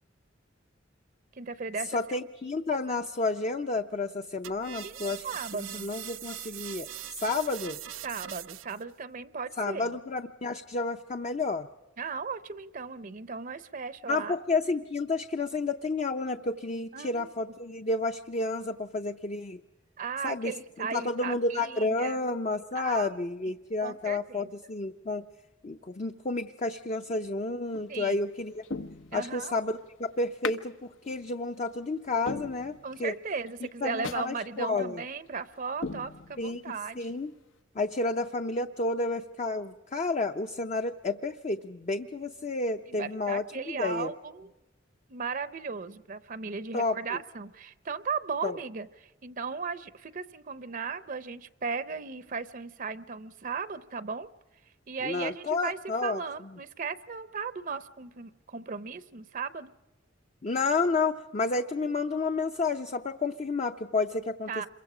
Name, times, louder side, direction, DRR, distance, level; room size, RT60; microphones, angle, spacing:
voice 1, 1.3-2.0 4.8-5.9 8.0-10.0 12.0-14.4 16.9-17.3 20.0-22.2 22.7-23.2 23.8-24.5 27.9-28.2 29.1-29.5 32.8-37.1 42.9-44.5 45.1-54.3 54.9-59.7 64.5-64.7, right 5 dB, 45° right, 14 dB, 0.7 m, -36 dB
voice 2, 1.9-5.3 5.7-6.9 7.2-7.8 9.6-11.7 14.1-19.6 20.2-20.5 20.8-25.2 25.6-28.6 29.1-33.1 33.8-35.0 36.4-37.3 37.8-44.1 46.7-47.0 48.4-48.6 55.0-56.2 60.4-64.7, left 3 dB, 35° left, 7 dB, 0.6 m, -31 dB
sound 1, 4.4-8.8, right 12 dB, 90° right, 0.6 m, -41 dB
sound 2, 27.7-28.1 28.6-29.6 30.4-30.7 31.1-31.2 31.7-31.8 32.3-33.1 33.5-33.6 34.0-34.3 34.7-34.8 35.3-35.4 35.8-36.7 37.1-37.2, left 3 dB, 75° left, 0.9 m, -38 dB
27.5 x 23.0 x 5.0 m, 1.1 s
head